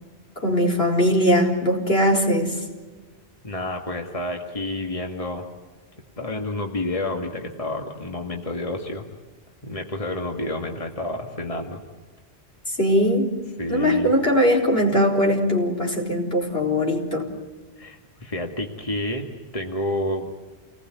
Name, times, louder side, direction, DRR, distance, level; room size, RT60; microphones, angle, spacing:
voice 1, 0.4-2.6 12.7-13.3 13.7-17.3, equal, 60° left, 0 dB, 4.6 m, -20 dB
voice 2, 3.4-5.4 6.2-9.1 9.6-11.8 13.6-14.1 17.8-20.3, left 1 dB, 30° left, 2 dB, 2.2 m, -29 dB
28.5 x 20.0 x 9.5 m, 1.3 s
omnidirectional pair, 1.1 m